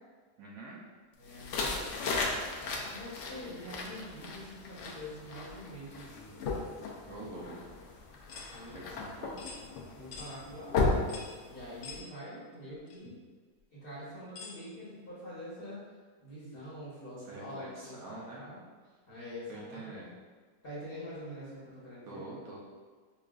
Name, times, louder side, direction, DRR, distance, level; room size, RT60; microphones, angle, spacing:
voice 1, 0.4-0.8 7.1-7.8 8.7-9.6 17.2-18.4 19.5-20.1 22.1-22.6, right 2 dB, 70° right, -4 dB, 1.0 m, -46 dB
voice 2, 1.2-2.0 2.9-6.5 7.0-7.6 8.5-9.0 9.9-11.0 11.4-13.1 13.7-15.8 16.2-18.6 19.1-20.0 20.6-22.2, equal, 40° left, -9 dB, 1.0 m, -45 dB
sound 1, 1.3-12.0, left 3 dB, 75° left, 0.7 m, -36 dB
sound 2, 8.3-8.5 9.4-9.6 10.1-10.3 11.1-11.3 11.8-12.0 12.9-13.0 14.4-14.6, left 4 dB, 90° left, 1.3 m, -45 dB
5.4 x 2.4 x 2.3 m, 1.5 s
omnidirectional pair, 1.8 m